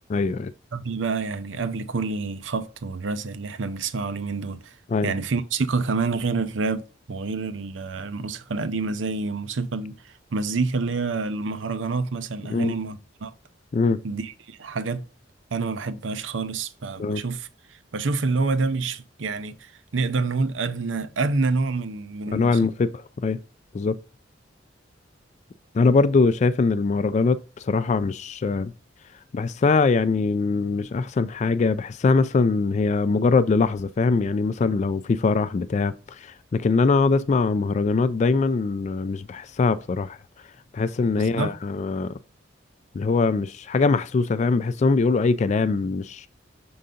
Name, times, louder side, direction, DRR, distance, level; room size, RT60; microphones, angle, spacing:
voice 1, 0.1-0.5 4.9-5.1 12.5-12.7 13.7-14.0 17.0-17.2 22.3-22.9 23.2-23.4 23.7-24.0 25.7-28.7 29.3-40.2 40.7-42.2 42.9-46.3, left 4 dB, 40° left, 0.3 m, -22 dB
voice 2, 0.7-4.8 5.0-13.3 14.0-15.0 15.5-22.7 41.2-41.5, right 4 dB, 85° right, 0.6 m, -28 dB
6.7 x 3.9 x 3.7 m
head